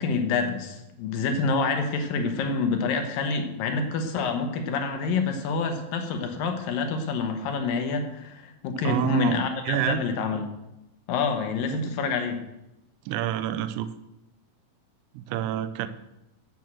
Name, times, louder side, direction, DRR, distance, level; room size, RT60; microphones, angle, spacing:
voice 1, 0.0-10.5 11.1-12.4, left 4 dB, 75° left, 5 dB, 2.7 m, -27 dB
voice 2, 8.8-9.4 9.7-10.0 13.1-13.9 15.1-15.9, right 11 dB, 80° right, 11 dB, 1.8 m, -28 dB
9.2 x 7.7 x 7.4 m, 0.91 s
omnidirectional pair, 4.1 m